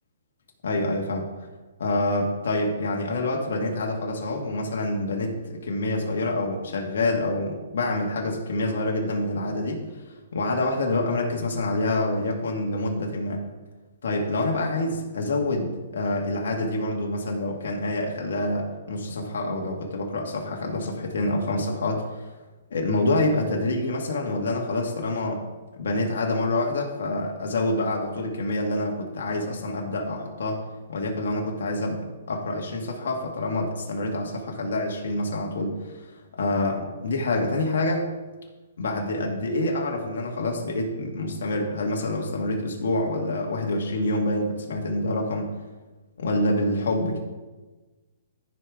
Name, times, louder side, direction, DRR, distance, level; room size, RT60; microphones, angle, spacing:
voice 1, 0.6-1.3 1.8-9.8 10.3-13.4 14.0-22.1 22.7-25.4 25.8-30.6 30.9-36.1 36.4-38.1 38.8-45.5 46.2-47.2, left 2 dB, 70° left, 0 dB, 1.6 m, -27 dB
14.0 x 5.3 x 3.6 m, 1.2 s
hypercardioid pair, 155°, 0 cm